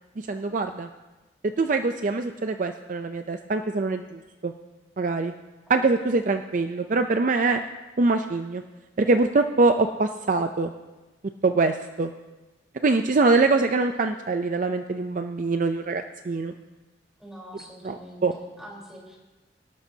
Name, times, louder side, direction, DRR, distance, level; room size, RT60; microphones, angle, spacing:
voice 1, 0.2-0.9 1.6-4.5 5.0-5.3 5.7-7.6 8.0-8.6 9.0-10.7 11.4-12.1 12.8-16.5 17.8-18.0 18.2-18.3, right 3 dB, 45° right, 7 dB, 0.5 m, -23 dB
voice 2, 17.2-19.2, equal, 5° right, -3 dB, 3.8 m, -44 dB
25.0 x 12.0 x 2.8 m, 1.1 s
head